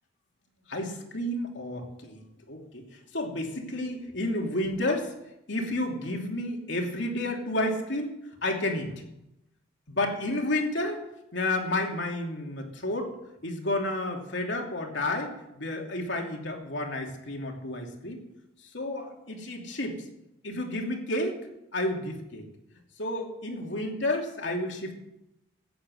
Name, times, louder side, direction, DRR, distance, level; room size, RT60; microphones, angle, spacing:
voice 1, 0.7-2.8 3.1-5.1 5.5-8.1 8.4-8.9 9.9-11.0 11.3-13.1 13.4-18.2 18.7-20.0 20.4-21.4 21.7-22.5 23.0-24.9, left 1 dB, 65° left, 2 dB, 2.9 m, -31 dB
15.5 x 10.0 x 7.9 m, 0.86 s
head